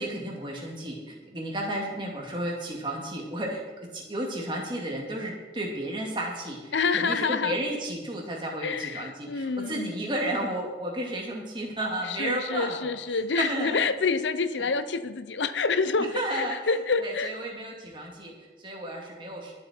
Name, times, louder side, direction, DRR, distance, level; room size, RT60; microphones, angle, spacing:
voice 1, 0.0-12.9 13.4-13.8 16.1-16.6 17.0-19.5, right 1 dB, 25° right, -1 dB, 2.4 m, -33 dB
voice 2, 6.7-7.6 8.6-10.0 12.0-17.3, left 4 dB, 85° left, 12 dB, 0.7 m, -27 dB
21.5 x 7.5 x 4.5 m, 1.3 s
head